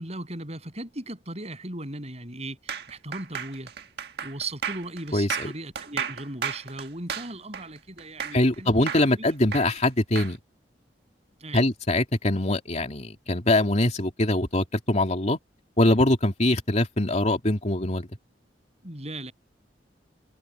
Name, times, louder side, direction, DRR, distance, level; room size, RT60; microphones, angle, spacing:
voice 1, 0.0-3.7 4.2-9.2 11.4-11.7 18.8-19.3, right 2 dB, 35° right, 7.6 m, -37 dB
sound 1, 2.7-8.5 8.9-10.3, right 7 dB, 65° right, 1.6 m, -33 dB
voice 2, 5.1-5.5 8.3-10.4 11.5-15.4 15.8-18.1, left 1 dB, 40° left, 3.0 m, -23 dB
head